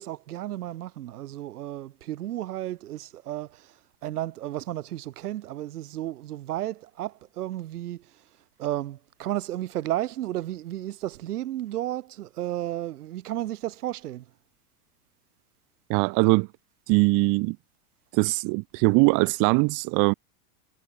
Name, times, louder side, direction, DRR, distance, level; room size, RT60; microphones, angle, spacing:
voice 1, 0.0-3.7 4.0-8.0 8.6-14.2, right 13 dB, 80° right, 7.0 m, -33 dB
voice 2, 15.9-16.5 16.9-17.6 18.1-20.1, right 31 dB, 40° right, 5.1 m, -21 dB
supercardioid pair, 155°, 45 cm